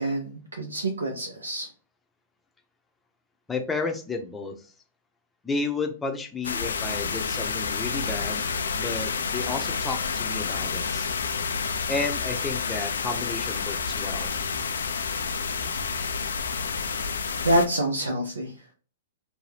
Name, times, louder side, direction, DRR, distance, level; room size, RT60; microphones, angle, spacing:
voice 1, 0.0-1.7 17.4-18.5, right 1 dB, 90° right, 0.6 m, -26 dB
voice 2, 3.5-4.7 5.4-8.5 8.7-11.1 11.9-14.3, left 3 dB, 10° left, 0.6 m, -32 dB
sound 1, 6.4-17.7, left 5 dB, 80° left, 0.4 m, -29 dB
2.6 x 2.2 x 3.3 m
hypercardioid pair, 115°, 0 cm